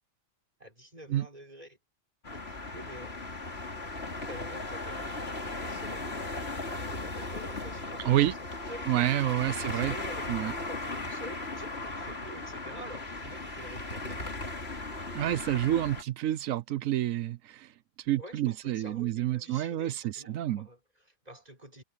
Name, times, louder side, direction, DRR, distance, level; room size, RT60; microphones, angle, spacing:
voice 1, 0.6-1.8 2.3-3.2 4.3-6.4 6.9-8.3 8.6-9.1 9.6-14.5 18.2-21.8, equal, 30° right, 5.8 m, -48 dB
sound 1, 2.2-16.0, left 2 dB, 50° left, 3.3 m, -37 dB
voice 2, 8.0-8.3 8.9-9.9 10.3-10.5 15.1-17.7 18.0-20.7, right 13 dB, 90° right, 1.1 m, -28 dB
omnidirectional pair, 1.3 m